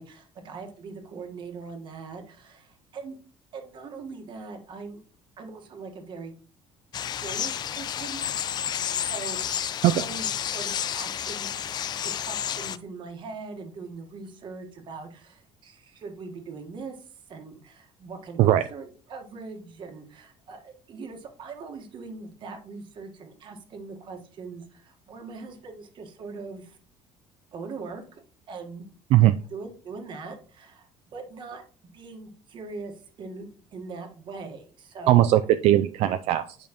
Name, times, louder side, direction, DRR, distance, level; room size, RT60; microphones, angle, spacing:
voice 1, 0.0-3.2 3.5-5.0 5.4-6.3 7.1-8.2 9.0-11.5 12.0-26.8 27.5-28.2 28.5-28.9 29.5-31.6 31.9-35.2, right 4 dB, 45° right, 4 dB, 1.5 m, -41 dB
sound 1, 6.9-12.8, left 9 dB, 40° left, 0.4 m, -30 dB
voice 2, 35.1-36.6, right 13 dB, 70° right, 10 dB, 0.4 m, -19 dB
8.8 x 5.2 x 3.0 m, 0.41 s
cardioid pair, 140°, 11 cm